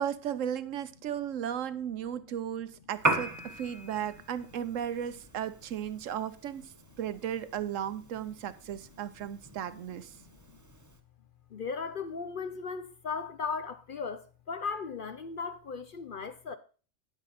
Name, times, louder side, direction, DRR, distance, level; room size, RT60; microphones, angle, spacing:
voice 1, 0.0-6.7 7.0-10.1, right 9 dB, 75° right, 1.1 m, -35 dB
Piano, 2.9-11.0, right 2 dB, 15° right, 0.9 m, -38 dB
voice 2, 10.2-10.6 11.5-16.6, left 5 dB, 50° left, 0.7 m, -37 dB
9.3 x 9.0 x 4.1 m
omnidirectional pair, 1.4 m